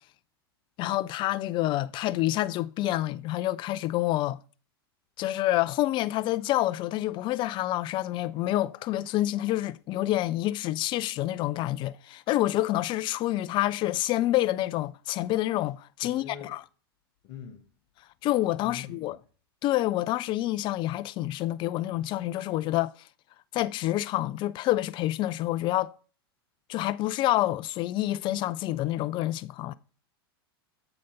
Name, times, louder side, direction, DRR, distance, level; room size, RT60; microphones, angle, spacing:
voice 1, 0.8-4.4 5.2-16.6 18.2-19.2 19.6-22.9 23.5-25.9 26.7-29.7, left 15 dB, 40° left, 0.4 m, -28 dB
voice 2, 16.0-16.5 17.2-17.6 18.6-19.1, left 8 dB, 55° left, 1.1 m, -43 dB
7.7 x 4.2 x 5.3 m
hypercardioid pair, 100°, 13 cm